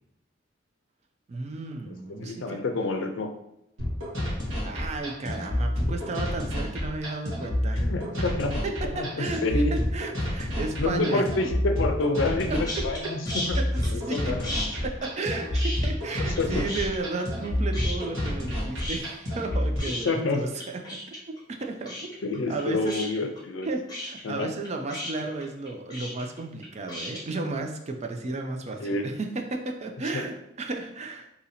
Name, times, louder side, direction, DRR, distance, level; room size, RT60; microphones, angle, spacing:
voice 1, 1.3-2.6 4.6-7.8 8.6-11.2 12.5-12.9 13.6-14.3 14.8-21.2 21.5-22.1 22.5-23.0 23.6-31.3, right 3 dB, 35° right, 3 dB, 0.4 m, -33 dB
voice 2, 2.1-3.3 7.7-8.6 8.9-9.8 10.8-13.6 13.9-14.5 16.2-16.7 20.0-20.4 22.2-23.7 24.2-24.5 28.8-29.1 30.1-30.3, left 2 dB, 75° left, 5 dB, 0.5 m, -28 dB
sound 1, 3.8-19.8, left 1 dB, 80° right, 1.4 m, -29 dB
sound 2, 12.6-13.0 13.3-14.2 14.4-16.4 16.6-17.5 17.7-18.5 18.8-27.2, left 1 dB, 20° left, 0.9 m, -35 dB
2.8 x 2.7 x 4.1 m, 0.85 s
head